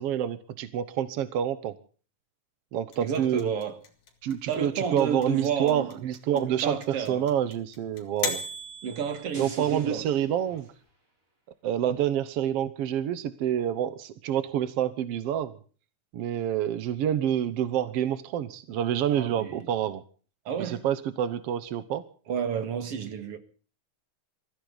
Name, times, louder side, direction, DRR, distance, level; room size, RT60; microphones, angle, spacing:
voice 1, 0.0-1.7 2.7-3.5 4.2-6.8 7.1-8.4 9.4-10.7 11.6-15.6 16.1-20.0 20.6-22.0, right 10 dB, 75° right, 1.4 m, -28 dB
sound 1, 2.9-9.9, left 4 dB, 55° left, 3.8 m, -36 dB
voice 2, 3.0-3.8 4.5-6.0 6.3-7.3 8.8-10.0 19.1-19.7 20.5-20.8 22.3-23.4, right 7 dB, 50° right, 2.3 m, -31 dB
sound 2, 9.3-11.2, right 1 dB, 20° right, 5.4 m, -50 dB
23.0 x 15.0 x 4.0 m
omnidirectional pair, 4.1 m